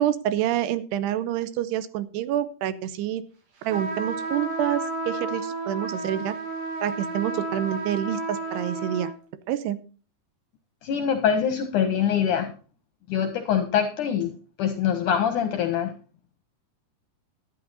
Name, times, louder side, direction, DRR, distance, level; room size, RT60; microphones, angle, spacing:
voice 1, 0.0-3.2 3.6-6.4 6.8-9.1 9.5-9.8, right 11 dB, 90° right, 14 dB, 2.8 m, -27 dB
sound 1, 3.7-9.1, right 2 dB, 70° right, 4.5 m, -32 dB
voice 2, 10.8-12.5 13.1-14.3 14.6-15.9, left 8 dB, 75° left, 7 dB, 1.9 m, -24 dB
12.5 x 9.5 x 4.0 m, 0.37 s
omnidirectional pair, 4.7 m